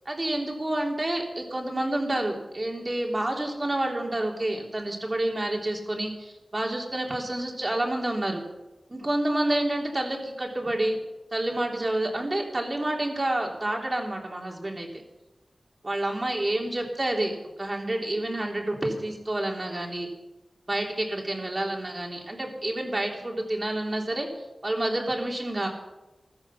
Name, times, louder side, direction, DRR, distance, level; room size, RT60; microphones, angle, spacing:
voice 1, 0.0-8.4 8.9-11.0 11.3-14.9 15.8-20.1 20.7-24.3 24.6-25.7, right 1 dB, 35° right, 1 dB, 3.4 m, -29 dB
15.0 x 14.0 x 5.9 m, 1.0 s
wide cardioid pair, 80°, 0 cm